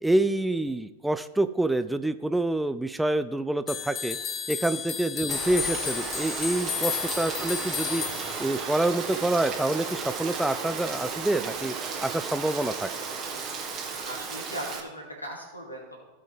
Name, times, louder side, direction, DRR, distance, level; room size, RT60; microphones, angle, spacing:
voice 1, 0.0-4.2 4.5-8.0 8.4-11.8 12.0-12.9, right 2 dB, 5° right, 12 dB, 0.4 m, -27 dB
sound 1, 3.7-8.9, left 8 dB, 30° left, 1.0 m, -33 dB
Rain, 5.3-14.8, right 5 dB, 30° right, 1.3 m, -34 dB
voice 2, 13.8-16.0, equal, 80° left, 0 dB, 2.5 m, -39 dB
16.0 x 5.5 x 3.4 m, 1.2 s
figure-of-eight pair, 90°, 0 cm